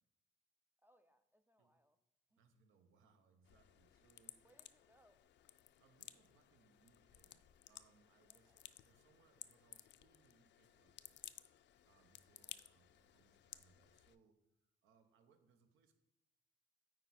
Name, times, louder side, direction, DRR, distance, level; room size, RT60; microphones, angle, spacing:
voice 1, 0.8-2.0 2.3-2.4 4.4-5.2 8.3-8.7 12.5-12.6, right 1 dB, 10° right, 7 dB, 0.3 m, -73 dB
voice 2, 2.4-4.4 5.8-11.2 11.5-16.0, right 5 dB, 85° right, 7 dB, 0.9 m, -74 dB
sound 1, 3.4-14.2, left 12 dB, 65° left, 0.4 m, -59 dB
9.0 x 4.5 x 4.1 m, 0.92 s
cardioid pair, 90°, 20 cm